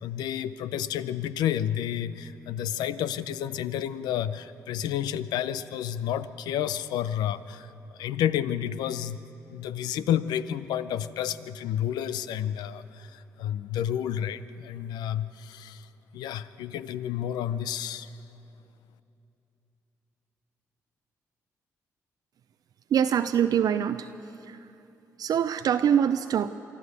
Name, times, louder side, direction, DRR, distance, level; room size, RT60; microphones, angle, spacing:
voice 1, 0.0-9.2 9.5-15.9 16.1-18.1, left 10 dB, 80° left, 15 dB, 0.6 m, -30 dB
voice 2, 22.9-24.1 24.4-24.6 25.2-26.5, right 9 dB, 65° right, 9 dB, 0.5 m, -24 dB
24.5 x 13.0 x 8.1 m, 2.9 s
supercardioid pair, 50°, 7 cm